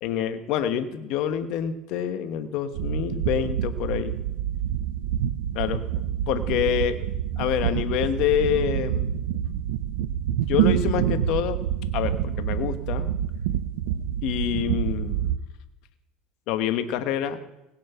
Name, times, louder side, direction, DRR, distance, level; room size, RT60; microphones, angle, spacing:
voice 1, 0.0-4.1 5.5-5.8 6.3-7.0 7.4-9.2 10.5-11.6 11.9-13.1 14.2-15.3 16.5-17.4, left 9 dB, 65° left, 10 dB, 1.1 m, -27 dB
sound 1, 2.7-15.4, right 10 dB, 85° right, 0.6 m, -27 dB
19.0 x 7.4 x 5.7 m, 0.93 s
supercardioid pair, 105°, 0 cm